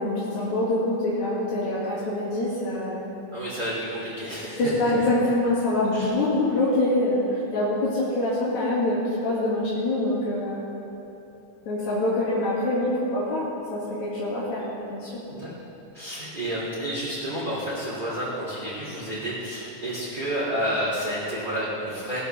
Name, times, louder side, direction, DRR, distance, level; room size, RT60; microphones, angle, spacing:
voice 1, 0.0-3.1 4.6-10.6 11.7-15.2, left 1 dB, 80° left, -8 dB, 3.6 m, -25 dB
voice 2, 3.3-4.6 5.9-6.1 15.3-15.5 15.9-22.2, equal, 15° right, -10 dB, 2.8 m, -30 dB
19.0 x 14.0 x 3.4 m, 2.9 s
omnidirectional pair, 3.3 m